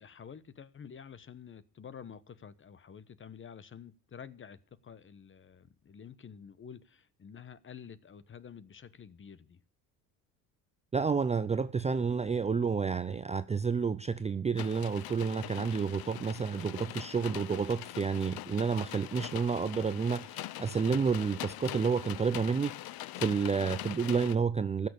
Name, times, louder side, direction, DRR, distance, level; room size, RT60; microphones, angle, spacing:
voice 1, 0.0-4.6 4.8-9.6, left 7 dB, 25° left, 1.1 m, -49 dB
voice 2, 10.9-24.9, right 5 dB, 15° right, 0.5 m, -30 dB
sound 1, 14.6-24.4, left 15 dB, 55° left, 0.8 m, -42 dB
15.0 x 6.7 x 8.6 m
supercardioid pair, 95°, 45 cm